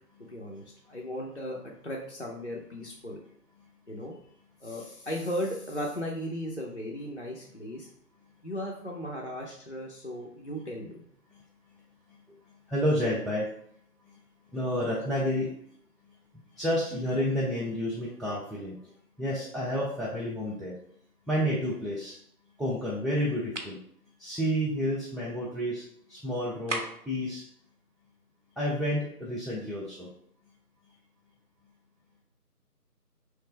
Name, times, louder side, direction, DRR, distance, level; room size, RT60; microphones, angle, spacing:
voice 1, 0.2-3.2 3.9-4.2 4.6-7.9 8.4-11.0, equal, 45° left, -3 dB, 0.6 m, -36 dB
voice 2, 12.7-13.5 14.5-15.5 16.6-18.9 19.2-20.8 21.3-22.2 22.6-23.8 24.2-25.8 26.1-27.4 28.6-30.1, equal, ahead, -7 dB, 0.5 m, -30 dB
sound 1, 23.5-23.8 26.7-27.2, right 2 dB, 50° right, 0.7 m, -34 dB
4.9 x 3.3 x 3.2 m, 0.67 s
figure-of-eight pair, 165°, 48 cm